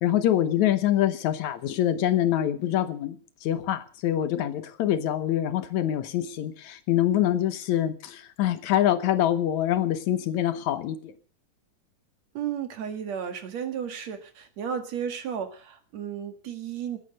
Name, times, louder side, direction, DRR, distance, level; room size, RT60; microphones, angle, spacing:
voice 1, 0.0-11.1, left 11 dB, 75° left, 2.3 m, -25 dB
voice 2, 12.3-17.0, right 8 dB, 65° right, 2.9 m, -33 dB
18.5 x 10.0 x 6.5 m
omnidirectional pair, 3.4 m